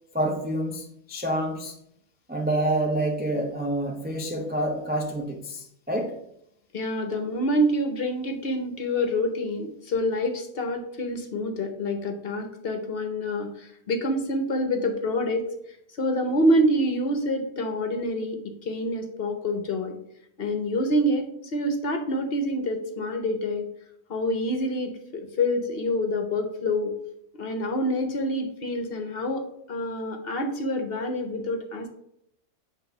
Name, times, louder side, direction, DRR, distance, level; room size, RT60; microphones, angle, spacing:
voice 1, 0.1-1.7 2.3-6.2, right 1 dB, 15° right, 0.3 m, -28 dB
voice 2, 6.7-20.0 20.4-23.7 24.1-26.9 27.3-31.9, equal, 50° left, 0.9 m, -27 dB
8.0 x 2.7 x 5.4 m
omnidirectional pair, 1.4 m